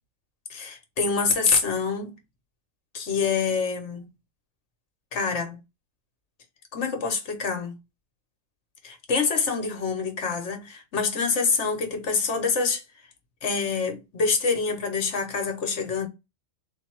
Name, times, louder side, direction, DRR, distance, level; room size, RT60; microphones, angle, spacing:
voice 1, 0.5-2.1 2.9-4.1 5.1-5.6 6.7-7.7 8.8-12.8 13.4-16.1, left 5 dB, 65° left, 1.2 m, -26 dB
3.6 x 2.8 x 4.3 m
omnidirectional pair, 1.3 m